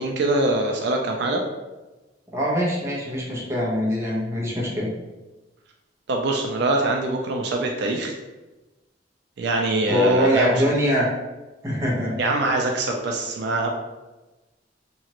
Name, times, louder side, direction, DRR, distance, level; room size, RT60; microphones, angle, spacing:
voice 1, 0.0-1.4 6.1-8.2 9.4-10.5 12.2-13.7, right 2 dB, 65° right, 1 dB, 0.4 m, -23 dB
voice 2, 2.3-4.9 9.9-11.0 11.6-12.1, equal, 15° right, -5 dB, 0.8 m, -22 dB
2.9 x 2.4 x 2.9 m, 1.1 s
head